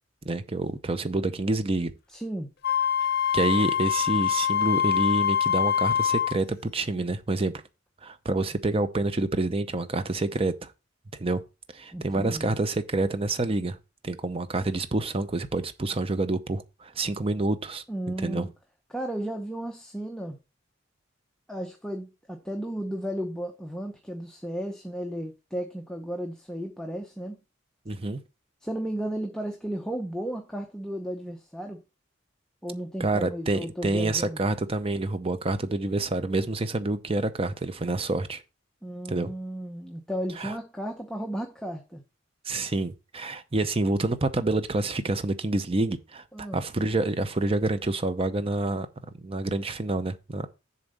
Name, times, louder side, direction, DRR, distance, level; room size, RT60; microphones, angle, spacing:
voice 1, 0.2-1.9 3.3-7.5 8.0-10.7 11.2-11.4 11.7-13.8 14.0-17.8 18.2-18.5 27.9-28.2 33.0-38.4 39.1-39.3 40.4-40.5 42.5-48.9 49.2-50.5, right 2 dB, 30° right, 0.7 m, -27 dB
voice 2, 2.1-2.5 11.9-12.5 17.9-18.5 18.9-20.4 21.5-27.4 28.6-31.8 32.6-34.4 38.8-42.0 46.3-46.6, right 1 dB, 5° left, 0.8 m, -34 dB
Wind instrument woodwind instrument, 2.6-6.4, left 8 dB, 55° left, 0.9 m, -24 dB
7.2 x 4.0 x 6.6 m
head